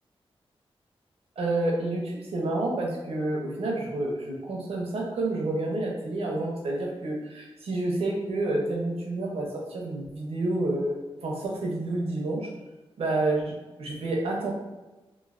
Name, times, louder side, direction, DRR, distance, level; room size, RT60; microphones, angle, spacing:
voice 1, 1.4-12.5 13.0-13.5 13.8-14.5, right 2 dB, 80° right, -1 dB, 0.7 m, -29 dB
3.0 x 2.6 x 2.5 m, 1.1 s
wide cardioid pair, 180°, 10 cm